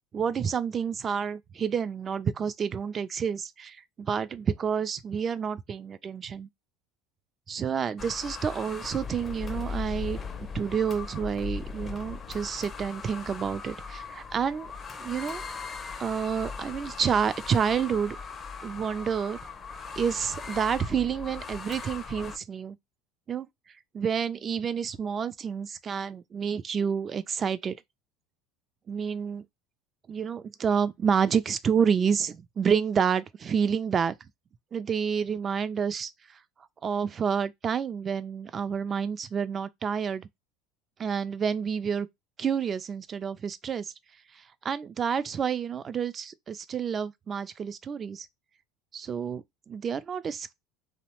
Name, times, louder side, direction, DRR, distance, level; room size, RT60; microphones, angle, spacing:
voice 1, 0.1-6.5 7.5-10.2 10.5-14.7 15.0-15.4 16.0-18.2 18.6-19.4 20.0-22.8 23.3-23.5 23.9-27.7 28.9-29.4 30.1-34.1 34.7-36.4 36.8-40.3 41.0-42.1 42.4-43.9 44.3-48.3 48.9-50.5, right 7 dB, 35° right, 0.3 m, -29 dB
sound 1, 8.0-22.4, left 5 dB, 25° left, 0.5 m, -39 dB
2.7 x 2.0 x 3.0 m
hypercardioid pair, 85°, 0 cm